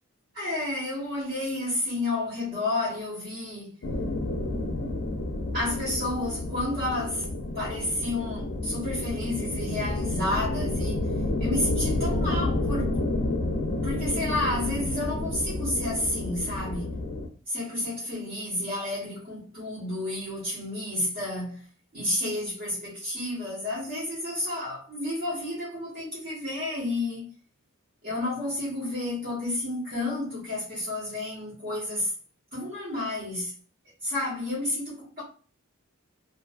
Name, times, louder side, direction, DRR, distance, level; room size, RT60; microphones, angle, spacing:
voice 1, 0.3-3.8 5.5-7.2 7.5-11.1 11.4-13.0 13.8-16.9 17.5-21.6 21.9-27.3 28.0-32.1 32.5-33.5 34.0-35.2, left 2 dB, 45° right, 1.0 m, -31 dB
sound 1, 3.8-17.3, left 2 dB, 60° left, 0.4 m, -30 dB
2.6 x 2.3 x 2.3 m
head